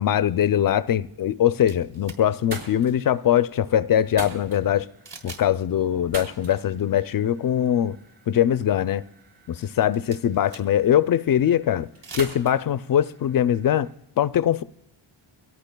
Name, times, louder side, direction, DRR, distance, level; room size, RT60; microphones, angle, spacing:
voice 1, 0.0-4.9 5.2-8.0 8.3-9.0 9.5-11.9 12.1-13.9 14.2-14.6, left 10 dB, 45° left, 0.4 m, -22 dB
sound 1, 1.4-2.0 2.3-13.9, right 4 dB, 60° right, 4.7 m, -44 dB
sound 2, 1.7-2.2 5.1-5.5 5.8-5.9 9.7-10.9 11.9-12.3, right 4 dB, 45° right, 3.3 m, -43 dB
24.5 x 17.0 x 2.2 m
cardioid pair, 110°, 49 cm